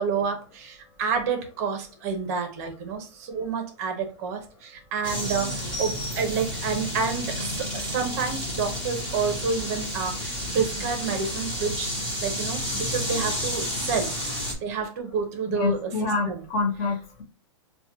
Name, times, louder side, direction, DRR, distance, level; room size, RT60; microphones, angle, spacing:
voice 1, 0.0-11.9 12.2-14.1 14.6-15.9 16.3-16.4, right 5 dB, 35° right, 0.6 m, -29 dB
sound 1, 5.0-14.5, equal, 10° left, 1.0 m, -31 dB
voice 2, 15.5-17.2, left 3 dB, 30° left, 0.7 m, -27 dB
4.7 x 2.1 x 2.8 m
hypercardioid pair, 165°, 15 cm